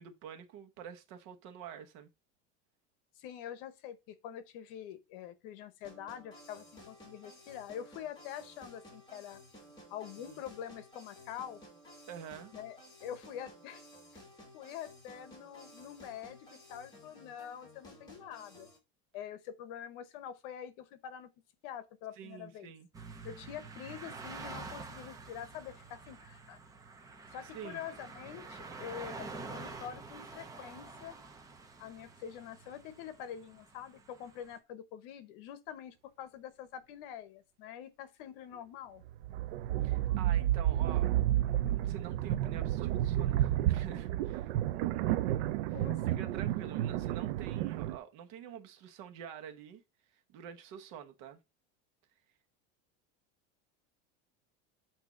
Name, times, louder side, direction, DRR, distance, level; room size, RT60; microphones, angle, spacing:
voice 1, 0.0-2.1 10.3-10.4 12.1-12.5 22.2-23.3 27.5-27.8 39.8-41.1 41.8-44.5 45.7-49.8 50.1-51.4, right 8 dB, 55° right, 1.1 m, -48 dB
voice 2, 3.2-9.4 9.9-11.6 12.5-13.8 14.5-18.7 19.1-21.3 21.6-22.7 23.2-26.6 27.3-31.2 31.8-39.0 45.7-46.3, left 9 dB, 60° left, 0.9 m, -45 dB
sound 1, 5.8-18.8, equal, 15° left, 2.4 m, -55 dB
sound 2, 22.9-34.6, right 4 dB, 10° right, 0.6 m, -48 dB
sound 3, 39.1-48.0, right 13 dB, 85° right, 0.5 m, -31 dB
8.4 x 2.8 x 5.0 m
cardioid pair, 165°, 31 cm